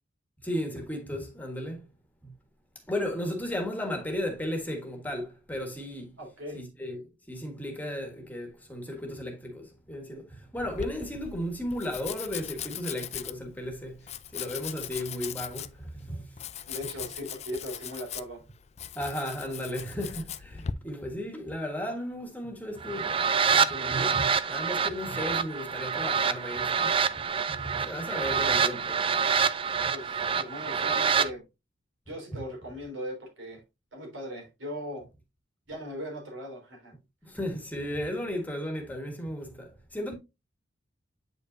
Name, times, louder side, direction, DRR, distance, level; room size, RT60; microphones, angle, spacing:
voice 1, 0.4-1.9 2.2-2.3 2.9-6.2 6.5-7.0 7.3-16.4 18.9-26.9 27.5-29.0 29.8-29.9 32.3-32.4 37.2-40.1, equal, 10° left, 1.5 m, -35 dB
voice 2, 6.2-6.6 16.7-18.4 29.9-31.4 32.1-33.6 33.9-35.1 35.7-36.9, equal, 90° right, 3.6 m, -39 dB
Domestic sounds home sounds, 10.6-20.7, left 9 dB, 35° left, 0.4 m, -40 dB
sound 1, 22.8-31.3, right 6 dB, 30° right, 0.4 m, -27 dB
8.3 x 5.4 x 2.6 m
head